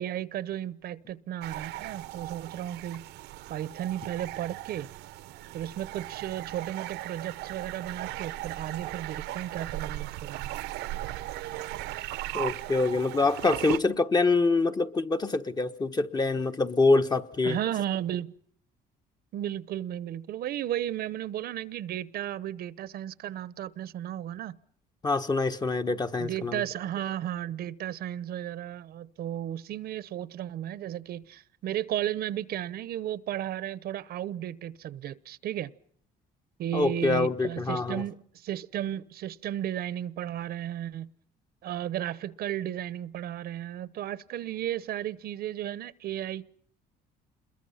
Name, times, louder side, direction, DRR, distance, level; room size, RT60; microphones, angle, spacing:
voice 1, 0.0-3.0 3.5-4.9 5.5-10.5 17.4-18.3 19.3-24.5 26.2-35.7 36.6-41.1 41.6-46.4, right 11 dB, 65° right, 0.9 m, -34 dB
sound 1, 1.4-13.8, right 15 dB, 90° right, 1.0 m, -38 dB
voice 2, 12.3-17.6 25.0-26.6 36.7-38.0, left 3 dB, 25° left, 1.3 m, -25 dB
28.0 x 22.0 x 5.7 m
cardioid pair, 110°, 17 cm